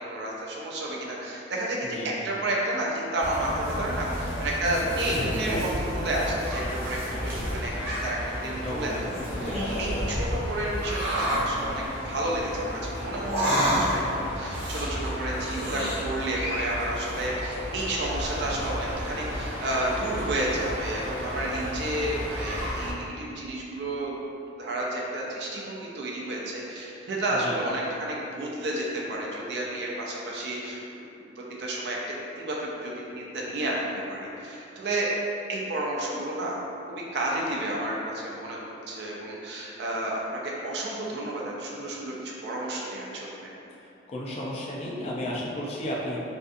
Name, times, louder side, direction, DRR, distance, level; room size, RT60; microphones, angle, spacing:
voice 1, 0.0-7.0 7.2-8.2 8.4-9.0 9.4-9.5 9.8-24.1 24.6-31.0 31.4-32.0 32.4-35.1 35.5-36.6 36.9-38.6 38.9-43.5, right 1 dB, 60° right, -4 dB, 0.4 m, -31 dB
sound 1, 3.2-22.9, equal, 10° right, 0.6 m, -33 dB
voice 2, 8.6-9.8 27.4-27.6 44.1-46.2, left 1 dB, 30° left, -5 dB, 0.3 m, -33 dB
sound 2, 9.1-10.1 10.8-11.5 13.1-14.1 14.4-16.4 16.7-17.3, right 1 dB, 40° right, 0.9 m, -29 dB
2.6 x 2.3 x 2.5 m, 2.8 s
head